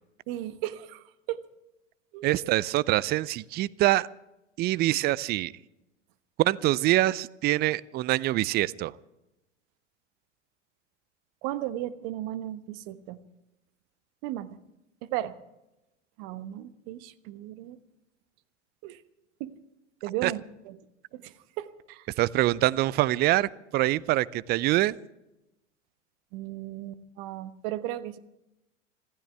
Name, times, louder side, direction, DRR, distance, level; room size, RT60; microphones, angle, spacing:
voice 1, 0.3-1.4 2.1-2.4 11.4-13.2 14.2-14.6 15.0-15.4 16.2-17.8 18.8-19.0 19.4-19.6 20.0-20.8 21.1-22.1 26.3-28.2, right 13 dB, 50° right, 12 dB, 1.3 m, -36 dB
voice 2, 2.2-4.1 4.6-5.5 6.4-8.9 20.2-20.3 22.2-25.0, right 16 dB, 25° right, 22 dB, 0.5 m, -25 dB
26.5 x 15.5 x 3.4 m, 0.93 s
figure-of-eight pair, 90°, 38 cm